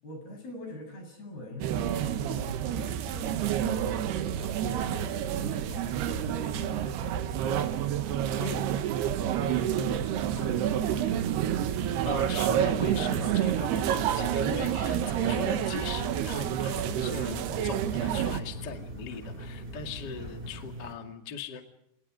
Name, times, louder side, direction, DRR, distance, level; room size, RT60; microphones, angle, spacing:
voice 1, 0.0-7.8 8.3-8.6 9.4-11.3, left 1 dB, 65° left, 3 dB, 9.8 m, -43 dB
sound 1, 1.6-18.4, right 10 dB, 80° right, 3.3 m, -29 dB
sound 2, 11.6-20.9, right 1 dB, 10° right, 4.6 m, -42 dB
voice 2, 12.1-21.8, left 5 dB, 35° left, 5 dB, 2.0 m, -39 dB
28.5 x 28.5 x 5.1 m, 0.76 s
omnidirectional pair, 4.8 m